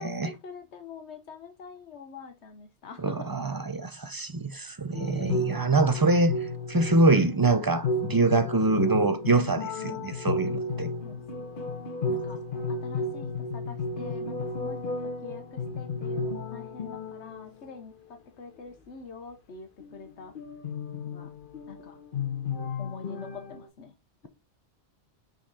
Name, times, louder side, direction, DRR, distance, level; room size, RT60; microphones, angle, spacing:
voice 1, 0.0-3.3 11.0-11.7 12.1-12.4 12.7-20.4 21.0-21.3 21.7-22.0 22.8-23.9, left 5 dB, 80° left, 1.2 m, -45 dB
voice 2, 3.0-10.9 12.1-12.2, right 3 dB, 35° right, 0.4 m, -25 dB
sound 1, 4.9-17.5 19.8-23.7, left 3 dB, 50° left, 1.1 m, -33 dB
6.1 x 4.1 x 4.0 m
omnidirectional pair, 1.1 m